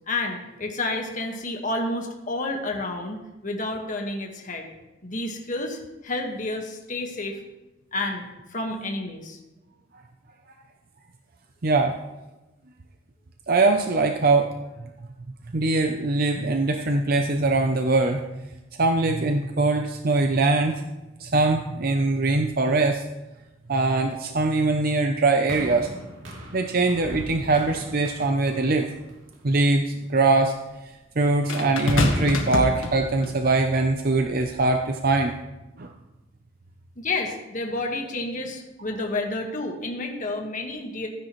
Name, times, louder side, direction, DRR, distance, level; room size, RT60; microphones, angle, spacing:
voice 1, 0.1-4.7 5.0-7.4 7.9-8.2 8.5-9.4 37.0-41.1, left 2 dB, 40° left, 1 dB, 1.6 m, -30 dB
voice 2, 11.6-12.0 13.5-14.5 15.5-18.4 18.8-20.8 21.2-23.0 23.7-25.9 26.5-28.9 29.4-30.5 31.2-35.4 35.8-35.9, right 3 dB, 50° right, 4 dB, 0.6 m, -22 dB
sound 1, 25.5-29.8 30.6-30.7, equal, 85° right, 2.7 m, -40 dB
sound 2, 28.6-28.7 31.5-33.4 34.3-34.5, left 1 dB, 85° left, 1.6 m, -26 dB
14.5 x 10.0 x 3.2 m, 1.0 s
head